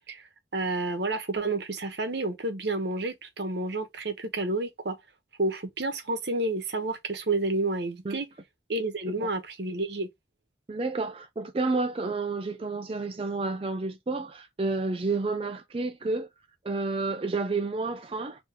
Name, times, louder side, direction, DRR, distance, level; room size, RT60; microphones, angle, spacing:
voice 1, 0.5-5.0 5.4-8.3 8.7-10.1, right 2 dB, 70° right, 1.0 m, -30 dB
voice 2, 10.7-16.3 16.6-18.5, right 3 dB, 30° right, 0.4 m, -30 dB
3.7 x 2.9 x 4.3 m
head